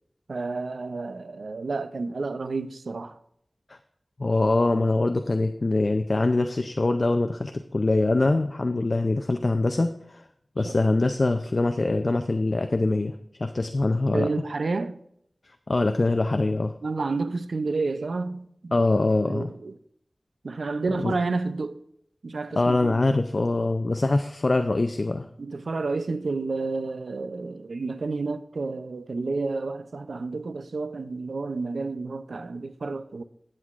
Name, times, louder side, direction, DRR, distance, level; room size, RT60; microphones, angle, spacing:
voice 1, 0.3-3.2 10.6-10.7 14.1-15.0 16.8-18.7 19.3-19.8 20.4-21.8 22.2-23.0 25.4-33.2, right 3 dB, 90° right, 0.5 m, -30 dB
voice 2, 4.2-10.2 10.6-13.1 13.4-14.3 15.7-16.7 18.7-19.5 21.0-21.1 22.6-25.3, left 2 dB, 55° left, 0.4 m, -23 dB
14.0 x 7.6 x 2.5 m
wide cardioid pair, 60°, 0 cm